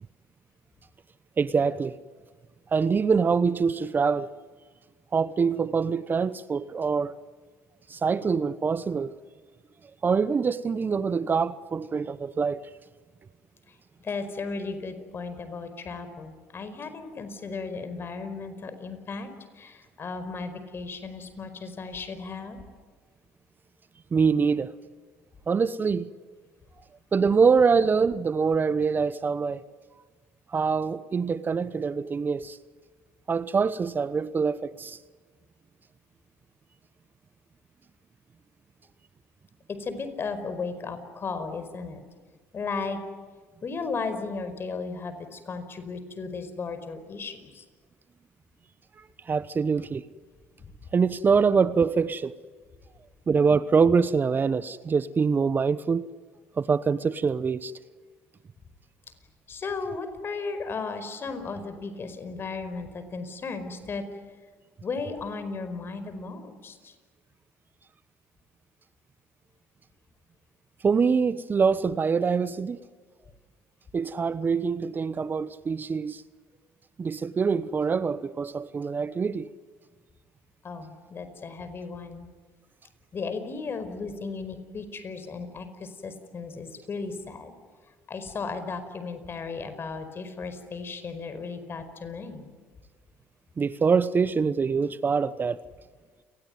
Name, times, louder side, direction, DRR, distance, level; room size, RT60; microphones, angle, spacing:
voice 1, 1.4-2.0 2.7-4.3 5.1-7.2 7.9-9.1 10.0-12.7 24.1-24.7 25.5-26.1 27.1-29.6 30.5-32.6 33.3-35.0 49.3-50.0 50.9-52.4 53.3-56.1 56.6-57.7 70.8-72.8 73.9-76.2 77.0-79.5 93.6-95.6, right 5 dB, 35° right, 1.0 m, -24 dB
voice 2, 13.7-22.6 39.7-42.0 42.5-43.0 43.6-47.6 59.5-64.2 64.8-66.9 80.6-82.3 83.1-87.5 88.1-92.4, left 4 dB, 40° left, 5.0 m, -35 dB
29.5 x 20.0 x 9.5 m
hypercardioid pair, 70°, 6 cm